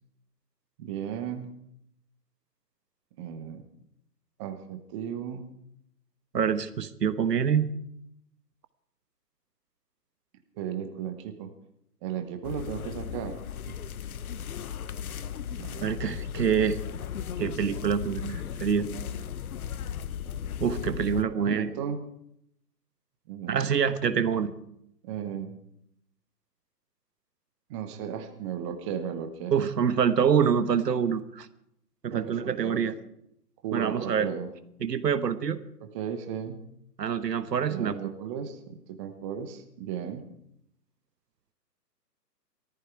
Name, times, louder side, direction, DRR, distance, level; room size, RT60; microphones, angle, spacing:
voice 1, 0.8-1.5 3.2-3.7 4.4-5.5 10.6-11.5 12.0-13.4 15.6-15.9 21.1-22.0 23.3-23.7 25.0-25.5 27.7-29.5 32.1-32.9 33.6-34.5 35.9-36.6 37.7-40.2, right 8 dB, 20° right, 6 dB, 1.0 m, -35 dB
voice 2, 6.3-7.7 15.8-16.8 17.4-18.9 20.6-21.7 23.5-24.5 29.5-31.5 32.0-32.9 33.7-34.3 34.8-35.6 37.0-38.0, right 7 dB, 75° right, 12 dB, 1.3 m, -26 dB
sound 1, 12.4-21.2, left 8 dB, 60° left, 0.9 m, -36 dB
18.0 x 14.0 x 4.6 m, 0.76 s
hypercardioid pair, 145°, 49 cm